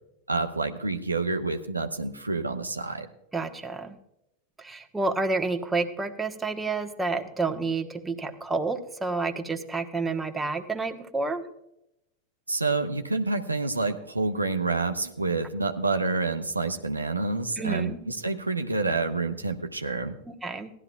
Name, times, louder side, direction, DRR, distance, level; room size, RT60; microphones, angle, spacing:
voice 1, 0.3-3.1 12.5-20.1, right 3 dB, 90° right, 7 dB, 0.8 m, -28 dB
voice 2, 3.3-3.9 4.6-11.5 17.6-18.0 20.3-20.7, right 3 dB, 10° right, 5 dB, 1.2 m, -29 dB
17.5 x 12.0 x 2.3 m, 0.81 s
figure-of-eight pair, 90°, 0 cm